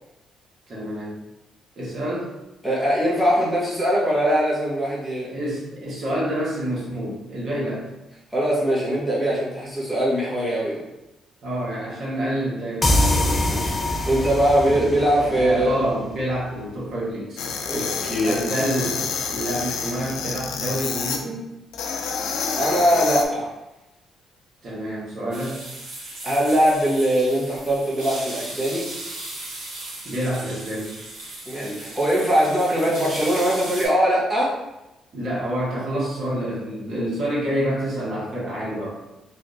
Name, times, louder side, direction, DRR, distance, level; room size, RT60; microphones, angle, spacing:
voice 1, 0.7-1.2 1.8-2.3 5.3-7.9 11.4-13.2 14.6-14.9 15.2-17.4 18.2-21.5 24.6-25.6 30.0-30.9 35.1-38.9, equal, 55° right, -7 dB, 1.4 m, -28 dB
voice 2, 2.6-5.3 8.3-10.8 13.5-13.8 14.1-15.7 17.7-18.4 22.6-23.5 26.2-28.9 31.4-34.5, equal, 5° right, -8 dB, 1.4 m, -21 dB
sound 1, 12.8-16.3, left 1 dB, 30° left, 0.4 m, -24 dB
sound 2, 17.4-21.2 21.7-23.3, left 5 dB, 90° left, 0.3 m, -28 dB
sound 3, 25.3-33.9, right 2 dB, 75° right, 1.1 m, -37 dB
3.2 x 3.1 x 2.7 m, 0.96 s
cardioid pair, 90°, 0 cm